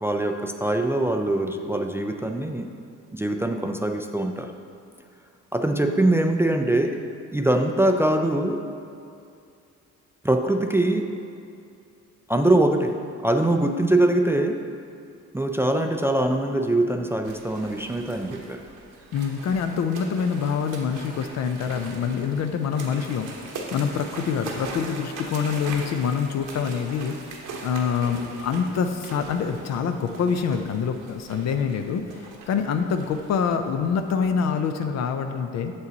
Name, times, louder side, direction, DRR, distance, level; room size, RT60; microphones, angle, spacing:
voice 1, 0.0-2.7 3.1-4.5 5.5-7.0 7.3-8.6 10.2-11.1 12.3-14.6 15.3-18.6, right 1 dB, 10° right, 4 dB, 0.3 m, -23 dB
sound 1, 17.2-34.2, right 3 dB, 80° right, 1.1 m, -40 dB
voice 2, 19.1-35.7, left 6 dB, 60° left, 7 dB, 0.5 m, -26 dB
6.7 x 5.5 x 4.0 m, 2.5 s
cardioid pair, 90°, 30 cm